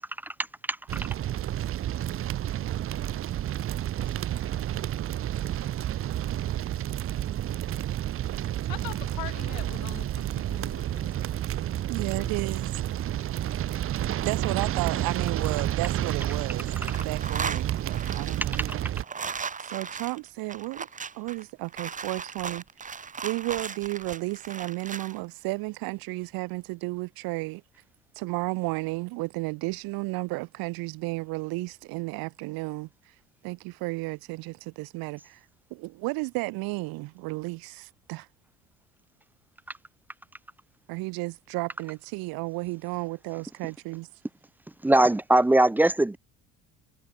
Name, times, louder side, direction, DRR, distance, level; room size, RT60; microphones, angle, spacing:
sound 1, 0.9-19.0, right 12 dB, 40° right, 0.7 m, -30 dB
voice 1, 8.7-11.2 12.1-12.6, left 21 dB, 80° left, 3.7 m, -42 dB
voice 2, 11.9-12.7 14.2-16.7 17.0-18.9 19.6-20.9 21.1-22.6 23.2-27.6 28.1-32.9 33.4-35.4 35.7-38.3 40.9-44.1, right 24 dB, 85° right, 2.9 m, -33 dB
sound 2, 15.9-16.4 16.7-25.2, right 5 dB, 20° right, 1.7 m, -37 dB
voice 3, 44.8-46.2, right 1 dB, 5° right, 0.3 m, -20 dB
cardioid pair, 130°, 35 cm